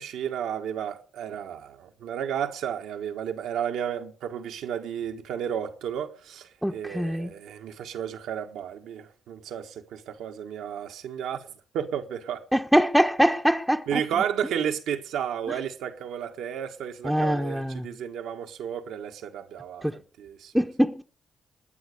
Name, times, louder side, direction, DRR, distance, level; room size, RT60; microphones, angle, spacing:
voice 1, 0.0-11.5 11.7-12.4 13.9-20.5, right 9 dB, 85° right, 1.5 m, -32 dB
voice 2, 6.6-7.3 12.5-14.0 17.0-17.9 19.8-20.0 20.5-21.0, equal, ahead, 1.0 m, -23 dB
21.5 x 9.2 x 6.7 m
supercardioid pair, 55°, 0 cm